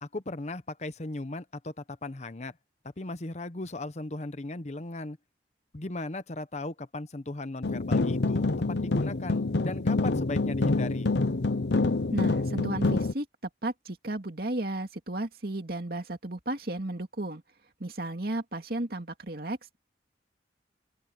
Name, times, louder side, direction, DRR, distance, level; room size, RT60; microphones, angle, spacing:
voice 1, 0.0-2.5 3.0-5.2 5.7-11.1, left 2 dB, 40° left, 0.9 m, -37 dB
sound 1, 7.6-13.1, left 3 dB, 75° left, 0.8 m, -26 dB
voice 2, 12.1-13.3 13.6-17.4 17.8-19.8, right 1 dB, 55° right, 2.4 m, -34 dB
open air
head